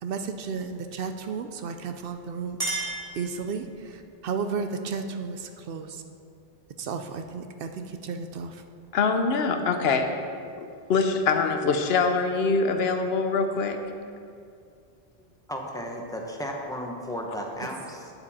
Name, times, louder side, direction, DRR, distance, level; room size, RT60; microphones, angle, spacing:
voice 1, 0.0-6.0 6.8-8.6, right 5 dB, 65° right, 7 dB, 0.7 m, -33 dB
Chink clink, 2.1-3.9, right 2 dB, 35° right, 2.2 m, -34 dB
voice 2, 8.9-10.1 10.6-13.8, left 4 dB, 80° left, 6 dB, 0.9 m, -24 dB
voice 3, 15.5-18.1, equal, 5° left, 0 dB, 0.8 m, -34 dB
9.4 x 7.1 x 4.2 m, 2.4 s
omnidirectional pair, 1.0 m